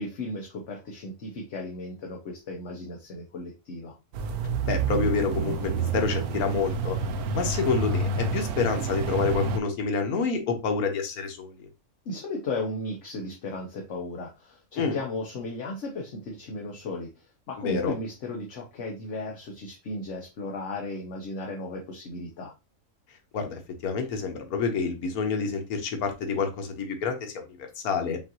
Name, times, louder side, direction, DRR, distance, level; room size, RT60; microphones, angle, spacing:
voice 1, 0.0-3.9 12.1-22.5, left 2 dB, 60° left, 0 dB, 1.1 m, -35 dB
sound 1, 4.1-9.6, right 4 dB, 85° right, 1.1 m, -28 dB
voice 2, 4.6-7.0 7.3-11.7 14.7-15.0 17.6-17.9 23.3-28.2, left 5 dB, 85° left, 5 dB, 1.3 m, -28 dB
5.5 x 2.5 x 2.8 m, 0.26 s
omnidirectional pair, 1.5 m